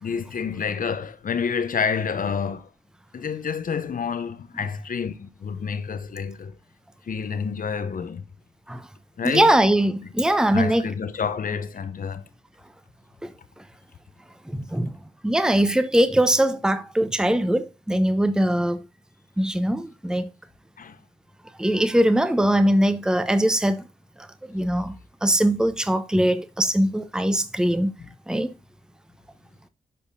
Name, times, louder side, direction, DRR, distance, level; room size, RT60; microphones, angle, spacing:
voice 1, 0.0-2.7 3.1-6.6 7.0-8.2 9.2-9.6 10.5-12.3 20.8-21.0, left 6 dB, 55° left, 0.8 m, -28 dB
voice 2, 9.2-10.9 13.2-13.3 14.5-14.9 15.2-18.8 19.4-20.3 21.6-23.9 24.2-25.0 25.2-27.9 28.3-28.5, right 1 dB, 5° right, 0.8 m, -21 dB
8.5 x 5.4 x 2.7 m
supercardioid pair, 45°, 17 cm